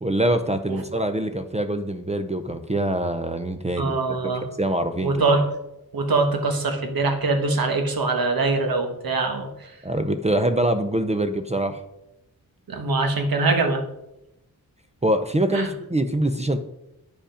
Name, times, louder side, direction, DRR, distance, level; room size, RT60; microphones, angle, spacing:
voice 1, 0.0-4.0 4.2-4.3 4.6-5.2 9.8-11.8 15.0-16.6, right 1 dB, 20° right, 8 dB, 0.5 m, -24 dB
voice 2, 3.8-4.4 5.0-5.4 5.9-9.7 12.7-13.8 15.5-15.7, right 3 dB, 65° right, 5 dB, 1.4 m, -23 dB
10.0 x 5.1 x 5.0 m, 0.87 s
wide cardioid pair, 105°, 38 cm